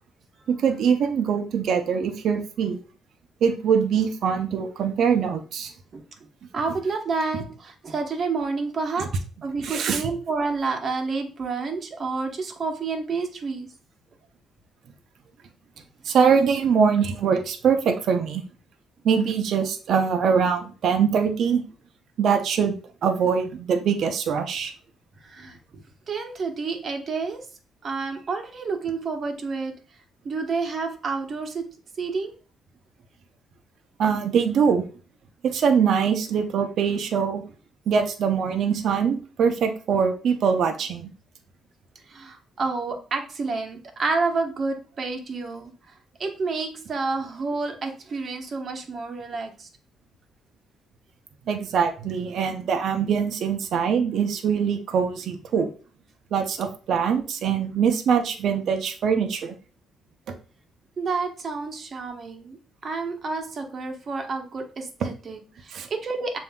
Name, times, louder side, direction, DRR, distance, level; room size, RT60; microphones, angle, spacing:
voice 1, 0.5-2.8 3.4-5.7 9.6-10.0 16.0-18.4 19.0-21.6 22.2-22.7 23.0-24.7 34.0-34.8 35.4-37.4 37.9-41.1 51.5-55.7 56.3-59.5 65.7-65.9, right 6 dB, 70° right, 5 dB, 0.6 m, -23 dB
voice 2, 6.5-9.1 9.4-13.7 25.2-25.6 26.1-27.4 27.8-29.7 30.2-31.6 32.0-32.3 42.1-45.7 46.2-49.7 61.0-62.6 62.8-66.4, right 4 dB, 45° right, 4 dB, 1.0 m, -29 dB
7.0 x 2.7 x 2.2 m, 0.37 s
cardioid pair, 90°, 0 cm